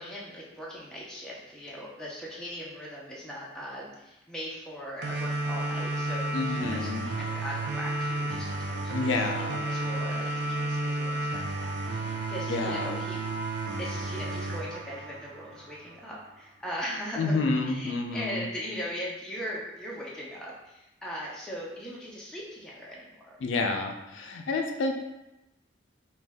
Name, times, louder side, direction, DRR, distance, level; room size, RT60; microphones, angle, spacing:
voice 1, 0.0-23.4, equal, 5° left, -5 dB, 0.5 m, -40 dB
sound 1, 5.0-16.0, right 2 dB, 65° right, 0.4 m, -32 dB
voice 2, 6.3-7.1 8.9-9.6 12.5-13.0 17.2-18.5 23.4-24.9, left 3 dB, 80° left, 3 dB, 0.4 m, -29 dB
2.5 x 2.2 x 3.4 m, 0.93 s
head